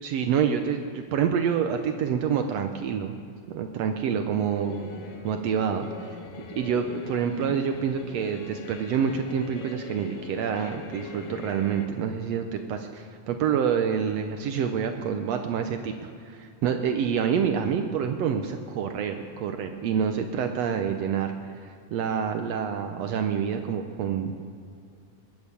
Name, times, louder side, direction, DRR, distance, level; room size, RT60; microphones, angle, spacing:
voice 1, 0.0-3.2 3.5-4.9 5.2-5.9 6.5-24.3, right 7 dB, 85° right, 6 dB, 1.4 m, -27 dB
sound 1, 4.5-11.9, left 5 dB, 75° left, 2.9 m, -41 dB
20.5 x 8.6 x 7.1 m, 2.4 s
omnidirectional pair, 4.0 m